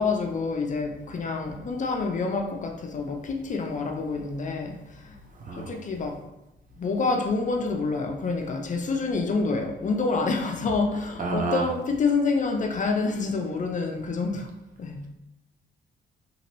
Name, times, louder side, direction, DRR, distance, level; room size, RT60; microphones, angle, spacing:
voice 1, 0.0-5.2 5.5-6.2 6.8-14.5 14.8-15.0, left 4 dB, 40° left, 2 dB, 0.5 m, -27 dB
voice 2, 5.3-5.8 11.2-11.7, right 3 dB, 40° right, 0 dB, 0.6 m, -29 dB
2.9 x 2.9 x 3.0 m, 0.91 s
cardioid pair, 90°, 20 cm